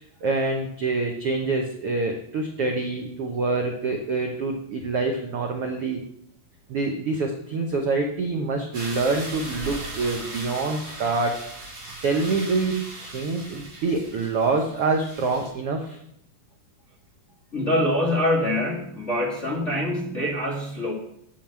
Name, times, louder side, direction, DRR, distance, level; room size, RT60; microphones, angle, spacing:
voice 1, 0.0-6.0 6.7-11.4 12.0-16.0, right 3 dB, 65° right, 2 dB, 1.4 m, -26 dB
sound 1, 8.7-15.5, right 2 dB, 40° right, 4.2 m, -38 dB
voice 2, 17.5-20.9, left 1 dB, 30° left, -3 dB, 1.3 m, -24 dB
9.2 x 7.3 x 7.4 m, 0.73 s
omnidirectional pair, 4.2 m